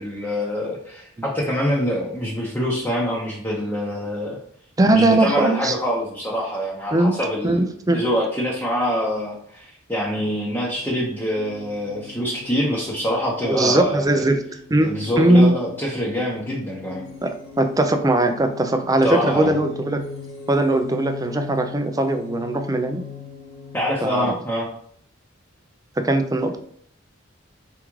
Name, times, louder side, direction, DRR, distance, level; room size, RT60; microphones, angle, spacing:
voice 1, 0.0-4.4 4.9-7.6 7.9-14.2 14.8-17.0 19.0-19.5 23.7-24.7, equal, 10° left, -5 dB, 0.8 m, -25 dB
voice 2, 4.8-5.8 6.9-7.2 7.4-8.1 13.4-14.4 14.7-15.6 17.2-20.0 20.5-23.0 24.0-24.2 26.0-26.6, right 1 dB, 20° right, 6 dB, 0.4 m, -19 dB
sound 1, 10.7-23.9, left 5 dB, 80° left, 0.8 m, -40 dB
4.8 x 3.6 x 3.1 m, 0.63 s
head